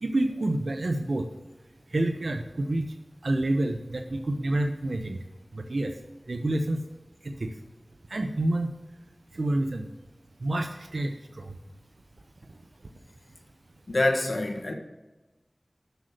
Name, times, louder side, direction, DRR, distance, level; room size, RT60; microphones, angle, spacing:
voice 1, 0.0-1.3 1.9-2.9 3.2-5.2 5.5-5.9 6.3-6.8 7.2-7.5 8.1-8.7 9.3-9.9 10.4-11.5, right 1 dB, 80° right, 0.7 m, -28 dB
voice 2, 13.9-14.7, left 2 dB, 70° left, 1.5 m, -25 dB
7.9 x 6.5 x 8.1 m
wide cardioid pair, 50°, 0 cm